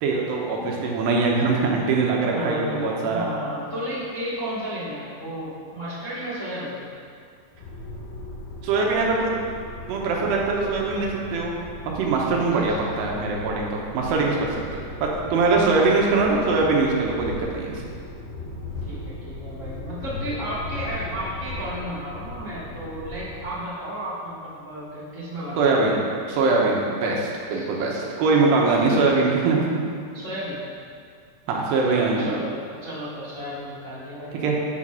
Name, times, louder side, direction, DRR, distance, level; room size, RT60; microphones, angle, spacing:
voice 1, 0.0-3.3 8.6-9.3 9.9-11.5 12.0-17.8 25.6-26.0 26.3-29.8 31.5-32.2 34.4-34.6, right 3 dB, 80° right, -1 dB, 3.0 m, -22 dB
voice 2, 2.3-6.8 15.5-15.9 18.8-25.8 27.5-27.6 28.8-29.1 30.1-30.6 31.9-34.6, equal, 45° left, -9 dB, 0.9 m, -33 dB
sound 1, 7.6-23.5, left 1 dB, 90° left, 4.5 m, -37 dB
8.3 x 5.8 x 6.3 m, 2.3 s
omnidirectional pair, 5.1 m